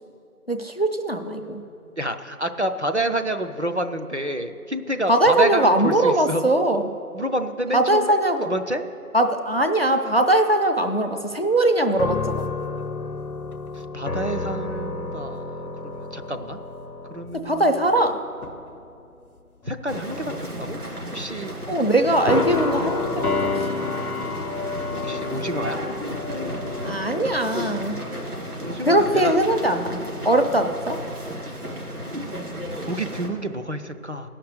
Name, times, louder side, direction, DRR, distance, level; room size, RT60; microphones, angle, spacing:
voice 1, 0.5-1.6 5.1-6.8 7.7-8.5 9.1-12.5 17.4-18.2 21.7-23.3 26.8-28.0 28.9-31.0, right 1 dB, 45° left, 7 dB, 0.5 m, -21 dB
voice 2, 2.0-6.5 7.1-8.2 8.5-8.8 13.7-16.6 17.1-17.8 19.7-20.8 21.1-21.6 25.0-25.8 28.6-29.4 30.0-30.3 32.8-34.3, right 1 dB, 50° right, 7 dB, 0.5 m, -28 dB
sound 1, 11.9-18.1 18.4-18.7 19.6-20.4 22.3-27.5, left 4 dB, 70° left, 0.7 m, -30 dB
sound 2, 19.9-33.3, equal, 80° right, 2.9 m, -33 dB
15.5 x 5.9 x 6.7 m, 2.6 s
figure-of-eight pair, 165°, 45 cm